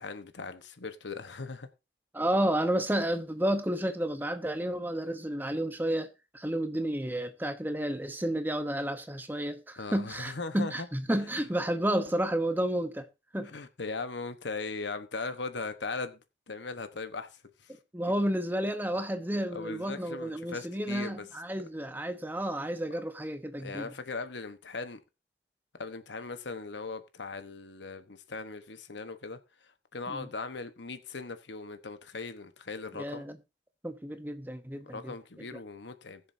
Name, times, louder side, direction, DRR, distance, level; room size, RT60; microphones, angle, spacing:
voice 1, 0.0-1.7 9.8-10.9 11.2-11.4 13.4-16.2 16.5-17.7 19.5-21.2 23.6-25.0 25.8-33.3 34.9-36.2, left 3 dB, 75° left, 1.1 m, -39 dB
voice 2, 2.1-13.1 13.3-13.5 17.9-23.9 30.1-30.3 32.9-33.4 33.8-35.1, right 1 dB, 10° right, 0.9 m, -31 dB
20.5 x 7.0 x 2.7 m
head